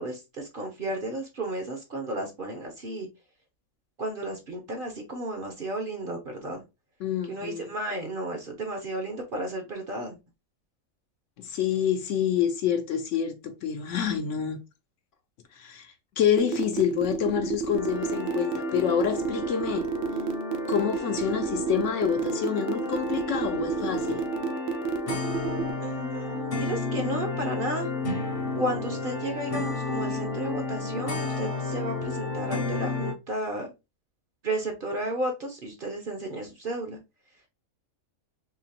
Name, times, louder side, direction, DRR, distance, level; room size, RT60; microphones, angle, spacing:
voice 1, 0.0-3.1 4.0-6.6 7.3-10.2 25.8-27.9 28.6-33.7 34.4-37.0, right 1 dB, 50° right, 0.8 m, -33 dB
voice 2, 7.0-7.7 11.4-14.6 15.6-15.9 16.2-19.9 20.7-24.2, left 9 dB, 70° left, 0.9 m, -27 dB
sound 1, 16.4-25.7, right 6 dB, 80° right, 1.0 m, -30 dB
sound 2, 17.8-33.1, left 3 dB, 40° left, 0.5 m, -32 dB
3.8 x 2.9 x 2.8 m
omnidirectional pair, 1.5 m